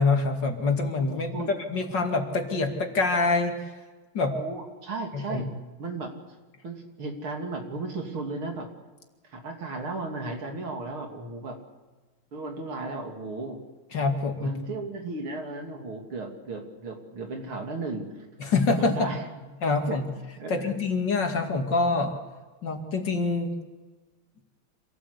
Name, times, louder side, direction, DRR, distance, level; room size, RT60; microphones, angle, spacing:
voice 1, 0.0-1.3 1.7-3.6 4.1-4.3 5.3-5.4 13.9-14.5 18.4-19.1 19.6-20.1 20.5-22.1 22.6-23.5, left 3 dB, 55° left, 4 dB, 2.9 m, -25 dB
voice 2, 4.3-5.5 5.8-6.1 6.6-8.7 9.3-11.6 12.3-13.6 14.4-18.1 18.8-19.2 19.9-20.0 20.4-20.7, right 3 dB, 80° right, 2 dB, 3.7 m, -35 dB
26.5 x 17.5 x 8.2 m, 1.3 s
omnidirectional pair, 2.3 m